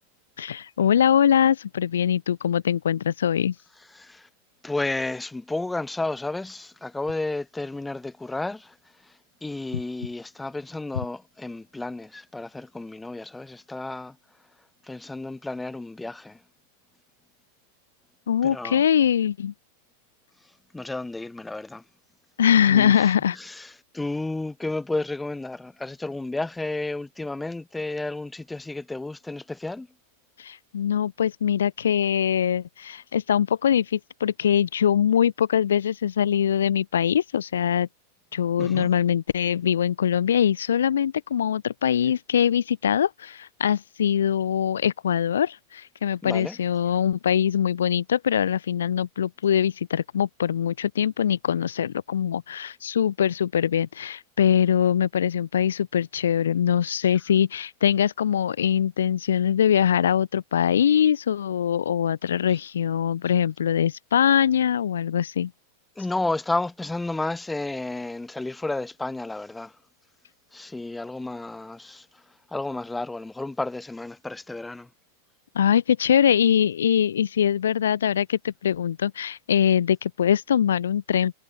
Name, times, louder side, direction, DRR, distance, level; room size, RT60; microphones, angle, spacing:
voice 1, 0.4-3.5 18.3-19.5 22.4-23.4 30.4-37.9 38.3-65.5 75.5-81.3, left 9 dB, 65° left, 1.6 m, -22 dB
voice 2, 3.9-4.3 4.6-8.8 9.0-9.1 9.4-14.2 14.8-16.4 18.4-18.8 20.7-21.8 22.7-29.9 38.6-38.9 46.2-46.6 66.0-69.8 70.5-72.2 72.5-74.9, left 2 dB, 5° left, 6.1 m, -32 dB
figure-of-eight pair, 90°, 0 cm